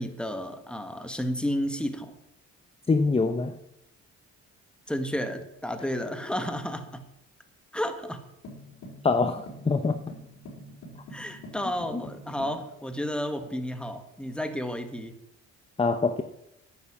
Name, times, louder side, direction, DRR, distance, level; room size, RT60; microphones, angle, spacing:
voice 1, 0.0-2.1 4.9-7.0 7.7-8.2 11.1-15.1, equal, 5° left, 7 dB, 1.6 m, -32 dB
voice 2, 2.9-3.6 9.0-10.0 11.9-12.0 15.8-16.2, left 4 dB, 20° left, 9 dB, 0.8 m, -24 dB
sound 1, 8.4-12.6, equal, 70° left, 4.3 m, -45 dB
10.0 x 8.5 x 7.3 m, 0.86 s
cardioid pair, 90°, 30 cm